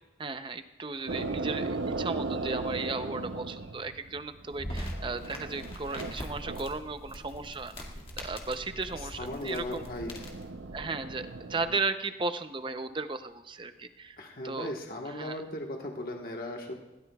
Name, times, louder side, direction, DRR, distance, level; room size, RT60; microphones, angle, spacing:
voice 1, 0.2-7.9 8.2-9.8 10.7-14.2 14.4-14.7 15.1-15.4, right 3 dB, 30° right, 9 dB, 0.6 m, -35 dB
sound 1, 1.1-6.7 7.0-7.6 7.9-11.8, right 3 dB, 90° right, 0.7 m, -38 dB
sound 2, 4.5-10.5, left 1 dB, 35° left, 2.0 m, -42 dB
voice 2, 8.9-10.1 14.2-16.7, left 1 dB, 55° left, 1 dB, 1.4 m, -37 dB
21.0 x 17.0 x 2.4 m, 1.0 s
head